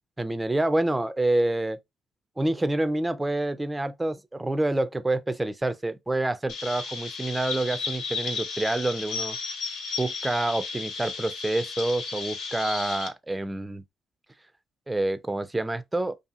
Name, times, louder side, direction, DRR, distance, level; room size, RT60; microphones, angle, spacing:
voice 1, 0.2-1.8 2.4-9.4 10.0-13.8 14.9-16.2, right 2 dB, 15° right, 0.3 m, -27 dB
Chirp tweet, 6.5-13.1, left 4 dB, 80° left, 0.6 m, -34 dB
2.7 x 2.5 x 2.4 m
cardioid pair, 90°, 0 cm